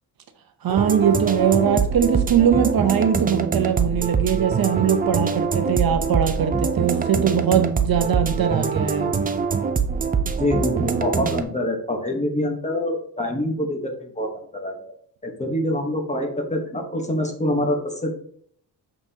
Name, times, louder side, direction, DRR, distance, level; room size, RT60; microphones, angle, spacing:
voice 1, 0.6-9.2, right 8 dB, 60° right, 8 dB, 0.7 m, -21 dB
sound 1, 0.7-11.4, right 5 dB, 20° right, 0.4 m, -24 dB
voice 2, 10.4-14.7 15.2-18.1, left 1 dB, 15° left, 2 dB, 1.1 m, -25 dB
6.4 x 5.7 x 2.8 m, 0.62 s
wide cardioid pair, 150°, 41 cm